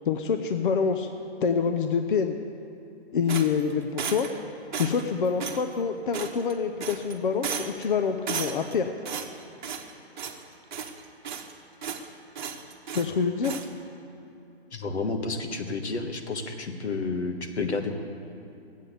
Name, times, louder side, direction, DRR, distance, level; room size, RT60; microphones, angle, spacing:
voice 1, 0.1-1.1 1.4-2.3 3.1-4.3 4.8-8.9 12.9-13.6, left 6 dB, 50° left, 7 dB, 0.7 m, -26 dB
sound 1, 3.3-4.4 4.7-5.1 5.4-5.6 6.1-6.5 6.8-7.1 7.4-7.8 8.3-8.7 9.0-9.9 10.2-10.4 10.7-11.5 11.8-12.1 12.3-13.1 13.4-13.7, right 6 dB, 45° right, 1.1 m, -34 dB
voice 2, 14.7-18.0, left 3 dB, 85° left, 5 dB, 1.5 m, -30 dB
13.5 x 8.3 x 8.0 m, 2.8 s
hypercardioid pair, 160°, 33 cm